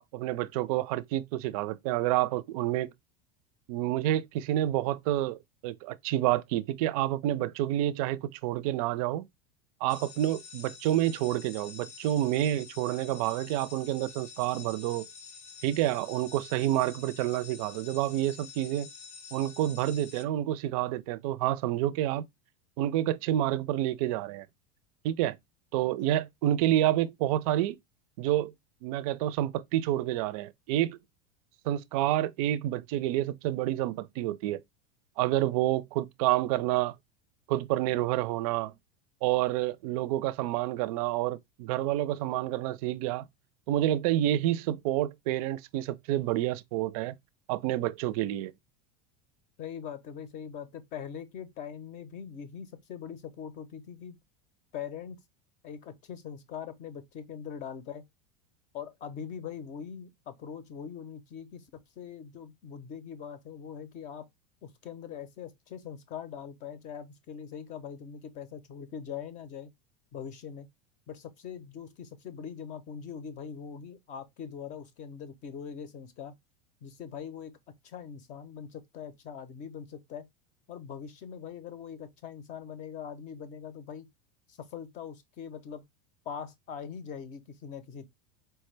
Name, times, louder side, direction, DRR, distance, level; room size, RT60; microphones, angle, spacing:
voice 1, 0.0-2.9 3.7-9.3 9.8-15.1 15.6-18.9 19.3-22.3 22.8-24.5 25.0-25.4 25.7-27.8 28.2-28.5 28.8-31.0 31.7-34.6 35.2-36.9 37.5-38.7 39.2-43.2 43.7-47.1 47.5-48.5, right 13 dB, 60° right, 0.4 m, -28 dB
sound 1, 9.9-20.2, left 5 dB, 90° left, 0.8 m, -48 dB
voice 2, 49.6-54.2 54.7-55.2 55.6-58.0 58.7-61.7 62.0-64.3 64.6-69.7 70.1-70.7 71.1-76.3 76.8-77.6 77.8-80.3 80.7-84.1 84.5-85.8 86.2-88.1, left 7 dB, 35° left, 0.6 m, -42 dB
4.5 x 2.2 x 3.2 m
supercardioid pair, 145°, 21 cm